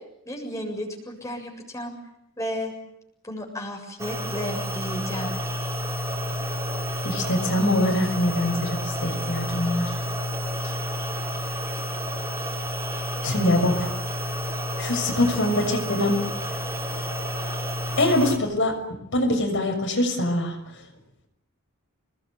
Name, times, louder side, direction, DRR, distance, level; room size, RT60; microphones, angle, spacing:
voice 1, 0.3-2.0 2.4-2.7 3.2-5.3, equal, 15° left, 1 dB, 7.3 m, -33 dB
sound 1, 4.0-18.4, equal, 15° right, 5.5 m, -30 dB
voice 2, 7.0-10.0 10.6-10.7 13.2-13.9 14.8-16.2 18.0-20.6, left 1 dB, 60° left, 3 dB, 6.4 m, -24 dB
27.5 x 20.5 x 9.2 m, 0.80 s
head